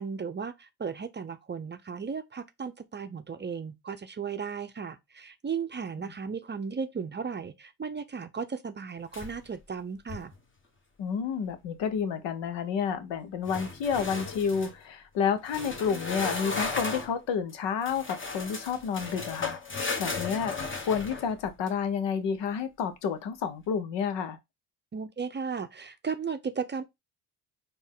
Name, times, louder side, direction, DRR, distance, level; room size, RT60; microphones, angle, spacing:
voice 1, 0.0-10.3 24.9-26.8, right 6 dB, 25° right, 0.6 m, -35 dB
sound 1, 9.1-9.6 10.0-10.4 13.5-14.7 15.5-17.1 17.9-21.7, left 3 dB, 25° left, 1.2 m, -35 dB
voice 2, 11.0-19.6 20.0-20.5 20.9-24.4, left 6 dB, 75° left, 0.9 m, -30 dB
4.3 x 2.7 x 3.6 m
supercardioid pair, 70°, 44 cm